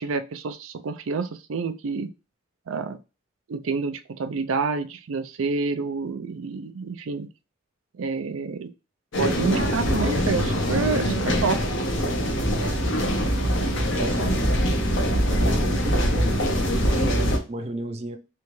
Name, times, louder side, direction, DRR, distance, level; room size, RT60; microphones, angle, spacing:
voice 1, 0.0-2.1 2.7-3.0 3.5-7.3 8.0-8.7 9.2-11.6, right 4 dB, 85° right, 0.4 m, -28 dB
sound 1, 9.1-17.4, equal, 65° left, 0.9 m, -23 dB
voice 2, 14.0-14.3 15.3-16.4 16.9-18.2, right 2 dB, 30° right, 0.4 m, -33 dB
3.7 x 3.3 x 3.1 m
head